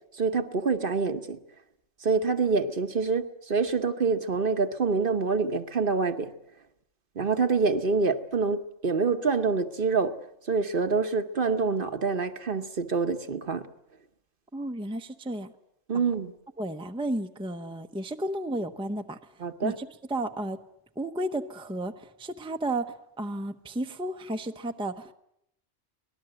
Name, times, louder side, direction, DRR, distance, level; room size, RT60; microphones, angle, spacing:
voice 1, 0.2-1.4 2.0-6.3 7.2-10.2 10.5-13.7 15.9-16.3 19.4-19.7, right 4 dB, 50° right, 8 dB, 1.2 m, -26 dB
voice 2, 14.5-15.5 16.6-19.2 19.6-20.6 21.0-25.1, right 1 dB, 5° right, 7 dB, 0.8 m, -33 dB
24.5 x 19.0 x 7.8 m, 0.79 s
omnidirectional pair, 1.2 m